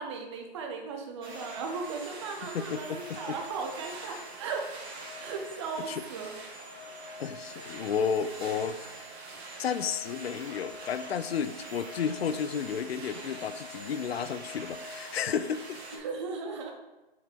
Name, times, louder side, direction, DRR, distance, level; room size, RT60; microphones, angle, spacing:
voice 1, 0.0-4.6 5.2-6.3 15.9-16.7, right 4 dB, 30° right, 3 dB, 0.8 m, -37 dB
sound 1, 1.2-16.0, right 1 dB, 85° right, 1.5 m, -44 dB
voice 2, 2.5-3.4 4.0-4.2 5.8-6.0 7.2-8.8 9.6-15.8, left 7 dB, 75° left, 14 dB, 0.5 m, -32 dB
6.1 x 4.0 x 4.4 m, 1.1 s
hypercardioid pair, 155°, 31 cm